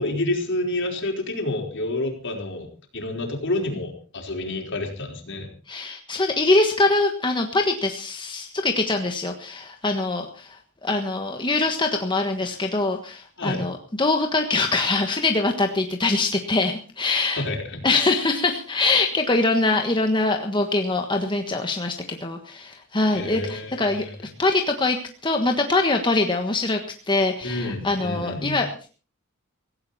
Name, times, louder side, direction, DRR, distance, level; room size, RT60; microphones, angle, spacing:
voice 1, 0.0-2.7 2.9-5.5 13.4-13.7 17.4-17.8 23.1-24.1 27.4-28.6, left 2 dB, 60° left, 2 dB, 4.7 m, -29 dB
voice 2, 5.7-10.6 10.8-17.4 17.8-25.0 25.2-26.8 27.1-28.9, left 2 dB, 20° left, 4 dB, 1.5 m, -23 dB
17.5 x 16.5 x 4.3 m, 0.38 s
head